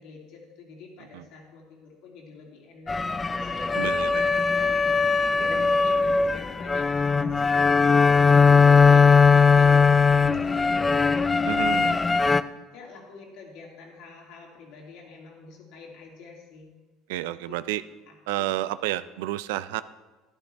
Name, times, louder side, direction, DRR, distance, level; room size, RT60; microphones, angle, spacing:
voice 1, 0.0-16.7 17.5-17.6 18.1-18.5, left 4 dB, 70° left, -1 dB, 2.8 m, -46 dB
sound 1, 2.9-12.4, left 5 dB, 20° left, 0.4 m, -19 dB
voice 2, 3.8-4.2 11.5-12.0 17.1-17.8 18.3-19.8, right 15 dB, 90° right, 15 dB, 0.4 m, -30 dB
11.5 x 11.0 x 3.4 m, 1.2 s
supercardioid pair, 105°, 0 cm